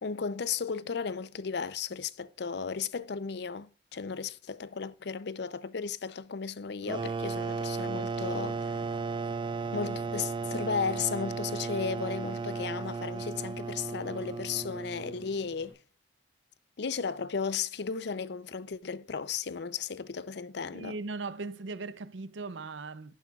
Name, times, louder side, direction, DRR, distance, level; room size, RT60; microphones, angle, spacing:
voice 1, 0.0-8.8 9.7-15.8 16.8-20.9, left 6 dB, 65° left, 0.6 m, -35 dB
sound 1, 6.9-15.3, right 4 dB, 25° right, 0.3 m, -35 dB
sound 2, 8.2-15.7, left 1 dB, 10° right, 6.1 m, -55 dB
voice 2, 20.7-23.1, right 3 dB, 80° right, 0.6 m, -38 dB
11.0 x 10.0 x 2.4 m
head